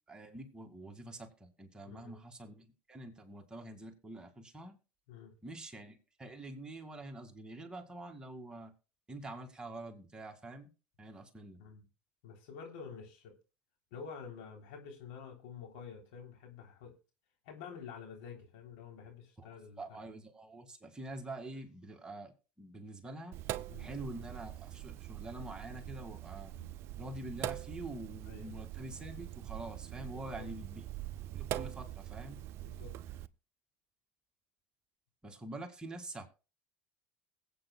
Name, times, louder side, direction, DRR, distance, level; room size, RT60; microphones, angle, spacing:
voice 1, 0.1-4.8 5.4-8.7 9.1-10.7 11.0-11.6 19.4-19.5 19.8-23.4 23.8-26.5 27.0-30.8 31.3-32.4 35.2-36.3, right 1 dB, 15° right, 3 dB, 2.3 m, -46 dB
voice 2, 12.2-13.4 13.9-17.0 17.5-19.8 23.7-23.9 26.4-26.7 28.2-28.5 30.1-30.5 31.0-31.1 32.6-32.9, left 6 dB, 70° left, 1 dB, 3.6 m, -49 dB
Sink (filling or washing), 23.3-33.3, right 14 dB, 55° right, 0.5 m, -43 dB
21.5 x 8.5 x 2.3 m, 0.32 s
hypercardioid pair, 80°, 5 cm